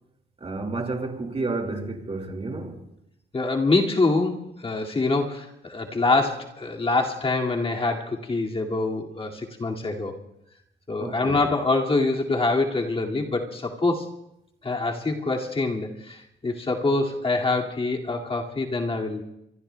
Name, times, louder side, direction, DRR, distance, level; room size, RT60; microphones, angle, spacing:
voice 1, 0.4-2.8 11.0-11.5, right 3 dB, 30° right, 2.3 m, -31 dB
voice 2, 3.3-10.2 10.9-14.1 14.6-19.2, left 3 dB, 30° left, 2.3 m, -25 dB
25.0 x 24.0 x 2.3 m
cardioid pair, 90°, 20 cm